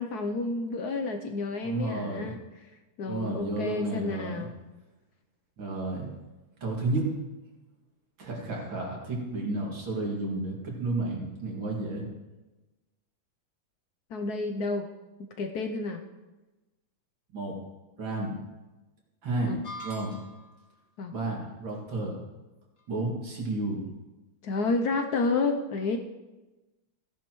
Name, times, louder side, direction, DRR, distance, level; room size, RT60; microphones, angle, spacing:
voice 1, 0.0-2.4 3.0-4.5 14.1-14.9 15.4-16.0 19.5-19.6 21.0-21.1 24.4-26.0, left 3 dB, 70° left, 5 dB, 0.9 m, -30 dB
voice 2, 1.6-2.3 3.0-4.5 5.6-6.1 6.6-7.1 8.2-12.1 17.3-17.6 18.0-18.3 19.2-19.6 19.8-20.2 21.1-22.2 22.9-23.8, right 2 dB, 65° right, -2 dB, 3.0 m, -31 dB
sound 1, 19.6-20.6, left 1 dB, 30° left, 1.4 m, -42 dB
16.0 x 10.5 x 3.1 m, 1.1 s
omnidirectional pair, 2.3 m